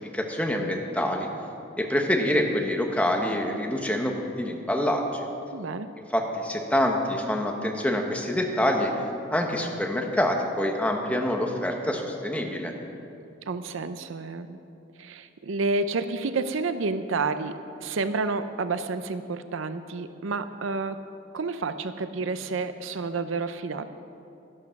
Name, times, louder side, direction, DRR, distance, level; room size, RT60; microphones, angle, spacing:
voice 1, 0.1-1.3 1.8-5.3 6.1-8.9 9.3-12.7, left 1 dB, 5° left, 1 dB, 1.2 m, -26 dB
voice 2, 5.5-5.9 13.5-14.6 15.0-17.5 17.8-21.0 21.3-23.9, right 3 dB, 70° right, 11 dB, 0.5 m, -30 dB
12.0 x 12.0 x 5.9 m, 2.7 s
head